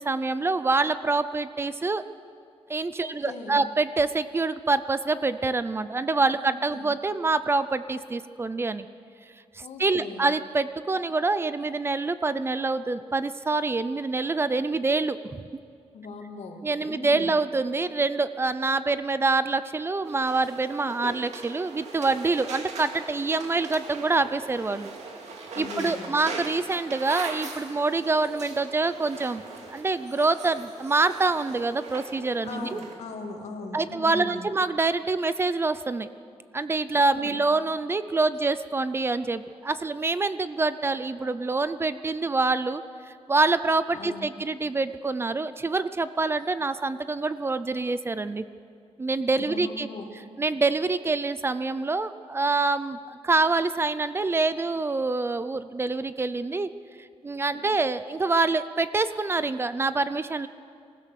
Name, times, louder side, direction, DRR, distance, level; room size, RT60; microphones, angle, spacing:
voice 1, 0.0-2.0 2.7-8.9 9.8-15.4 16.6-24.9 25.6-29.4 29.7-32.8 33.7-36.1 36.5-48.4 49.0-49.9 50.4-56.7 57.0-60.5, right 3 dB, 20° right, 13 dB, 0.5 m, -26 dB
voice 2, 3.0-3.6 6.3-6.9 9.6-10.3 15.9-17.3 25.5-26.2 32.4-34.5 37.1-37.4 43.9-44.3 49.3-50.1 57.5-57.8, left 3 dB, 85° left, 2 dB, 2.5 m, -39 dB
sound 1, 20.0-32.9, right 4 dB, 90° right, 2.4 m, -40 dB
25.0 x 16.0 x 6.6 m, 2.3 s
wide cardioid pair, 155°, 11 cm